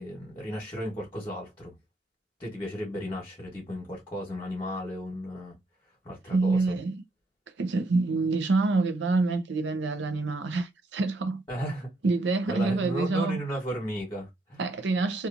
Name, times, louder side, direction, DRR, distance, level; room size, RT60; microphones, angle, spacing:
voice 1, 0.0-1.7 2.4-5.5 6.0-6.8 11.5-11.9 12.5-14.6, equal, 20° left, 1.2 m, -35 dB
voice 2, 6.3-7.0 7.6-11.4 12.0-13.4 14.6-15.3, right 3 dB, 70° right, 0.5 m, -26 dB
2.8 x 2.3 x 2.4 m
head